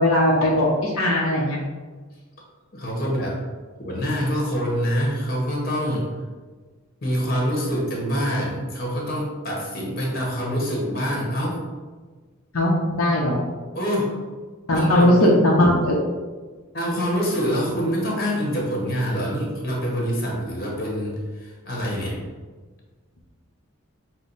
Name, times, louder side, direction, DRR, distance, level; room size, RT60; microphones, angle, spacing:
voice 1, 0.0-1.6 12.5-13.4 14.7-16.0, left 1 dB, 75° left, -3 dB, 0.7 m, -18 dB
voice 2, 2.7-3.4 3.8-6.1 7.0-11.6 13.7-14.2 14.7-15.3 16.7-22.2, equal, 45° left, -2 dB, 1.2 m, -25 dB
6.2 x 2.1 x 4.0 m, 1.4 s
head